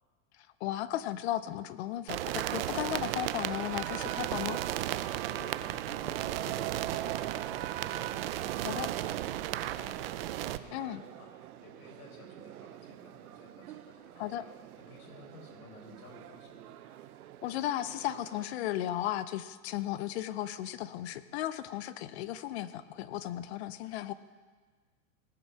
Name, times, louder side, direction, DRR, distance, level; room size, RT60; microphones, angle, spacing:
voice 1, 0.6-4.6 8.6-8.9 10.7-11.0 14.2-14.5 17.4-24.1, left 13 dB, 50° left, 15 dB, 0.6 m, -35 dB
sound 1, 2.1-10.6, right 14 dB, 45° right, 0.4 m, -34 dB
sound 2, 3.1-18.5, right 12 dB, 80° right, 0.9 m, -50 dB
voice 2, 5.2-14.5 14.8-16.7, left 2 dB, 75° left, 0 dB, 4.5 m, -53 dB
18.5 x 7.5 x 5.8 m, 1.5 s
supercardioid pair, 155°, 43 cm